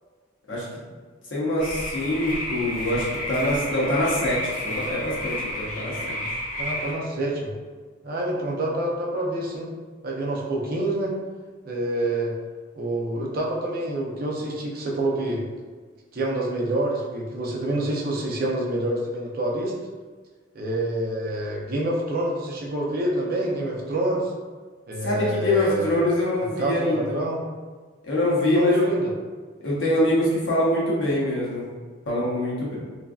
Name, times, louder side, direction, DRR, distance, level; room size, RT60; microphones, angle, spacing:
voice 1, 1.3-6.4 25.0-27.1 28.0-28.8 29.6-31.7 32.1-32.7, left 1 dB, 65° left, -6 dB, 0.9 m, -24 dB
sound 1, 1.6-6.9, left 1 dB, 40° left, 0.5 m, -31 dB
voice 2, 6.6-7.5 8.0-9.7 10.0-11.1 11.6-12.3 12.7-15.4 16.1-19.7 20.5-24.3 24.9-26.0 26.6-27.4 28.5-29.1, right 1 dB, 50° right, -2 dB, 0.5 m, -27 dB
3.1 x 2.5 x 2.3 m, 1.4 s
head